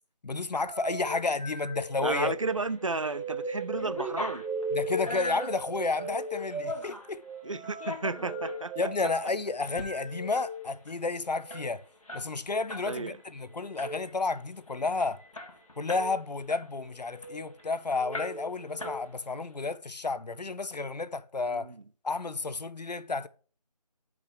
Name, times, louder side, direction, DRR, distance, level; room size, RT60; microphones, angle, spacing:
voice 1, 0.2-2.3 4.7-7.2 8.8-11.8 12.1-15.2 15.8-21.7 22.0-23.3, left 3 dB, 80° left, 0.6 m, -31 dB
sound 1, 0.7-10.6 11.4-11.6 13.6-14.0 14.8-15.3 15.8-16.1 16.9-17.4 17.9-18.9, right 1 dB, 5° right, 2.7 m, -38 dB
voice 2, 2.0-4.5 7.4-8.7 12.9-13.2 21.5-21.8, right 3 dB, 50° right, 0.4 m, -33 dB
sound 2, 2.7-3.2 3.5-7.1 7.6-8.6 9.0-9.2 9.6-9.9 10.2-10.3 10.6-12.9 13.2-13.4 13.8-14.2 14.7-14.8 15.0-16.1 16.5-17.7 18.1-18.5 18.8-19.4, left 2 dB, 55° left, 1.8 m, -40 dB
6.2 x 5.1 x 6.1 m
figure-of-eight pair, 165°, 21 cm